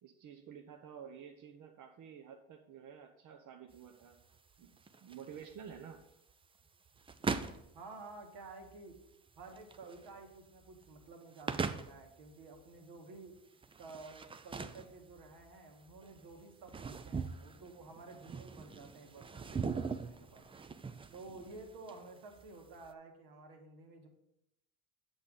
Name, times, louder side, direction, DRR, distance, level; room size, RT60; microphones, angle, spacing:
voice 1, 0.0-4.2 4.6-6.0, right 7 dB, 45° right, 3 dB, 0.8 m, -51 dB
sound 1, 3.7-22.9, right 5 dB, 15° right, 0.4 m, -43 dB
voice 2, 7.7-9.0 9.4-13.4 13.8-20.5 21.1-24.1, right 3 dB, 65° right, 3 dB, 1.9 m, -52 dB
8.0 x 6.6 x 3.8 m, 0.83 s
supercardioid pair, 90°, 42 cm